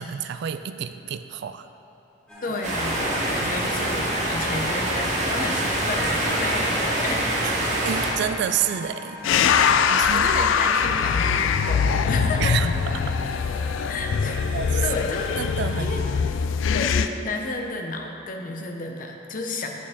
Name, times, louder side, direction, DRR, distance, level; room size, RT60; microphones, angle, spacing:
voice 1, 0.0-1.7 3.4-3.5 7.4-7.5 7.8-10.4 12.4-12.7 12.9-13.1 14.5-14.8 15.4-16.3, right 9 dB, 65° right, 11 dB, 0.3 m, -30 dB
sound 1, 2.3-16.0, left 1 dB, 5° left, 1.5 m, -40 dB
voice 2, 2.4-7.5 9.7-12.6 13.9-16.0 16.7-19.8, left 2 dB, 45° left, 3 dB, 0.7 m, -32 dB
sound 2, 2.6-8.1, right 1 dB, 40° right, 1.3 m, -25 dB
sound 3, 9.2-17.1, left 6 dB, 85° left, 0.3 m, -22 dB
9.2 x 6.8 x 3.6 m, 2.8 s
head